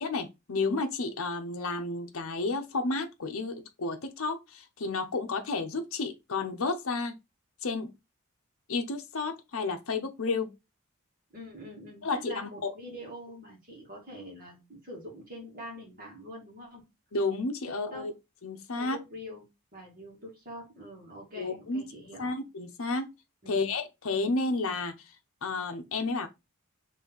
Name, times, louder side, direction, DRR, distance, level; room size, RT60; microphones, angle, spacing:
voice 1, 0.0-7.1 7.6-7.9 8.7-10.5 12.0-12.7 17.1-18.1 18.4-19.0 21.3-21.9 22.2-23.1 23.5-25.0 25.4-26.3, left 3 dB, 65° left, 0.7 m, -31 dB
voice 2, 11.3-16.8 17.7-18.1 18.8-19.4 19.7-22.4 23.4-23.7, equal, 40° right, 2.1 m, -45 dB
4.1 x 3.3 x 3.8 m
head